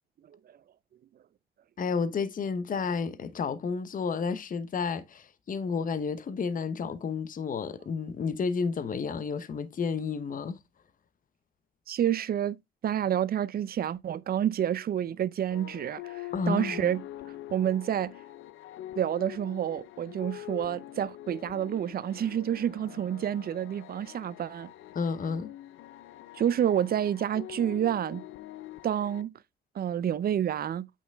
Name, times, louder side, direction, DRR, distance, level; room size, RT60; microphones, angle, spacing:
voice 1, 1.8-10.6 16.3-16.7 24.9-25.5, left 5 dB, 45° left, 0.9 m, -31 dB
voice 2, 11.9-12.6 12.8-17.0 17.5-18.1 19.0-24.7 26.3-28.2 28.8-29.3 29.7-30.9, right 10 dB, 50° right, 0.5 m, -29 dB
sound 1, 15.5-29.2, left 14 dB, 80° left, 0.6 m, -44 dB
8.4 x 5.7 x 3.4 m
cardioid pair, 90°, 20 cm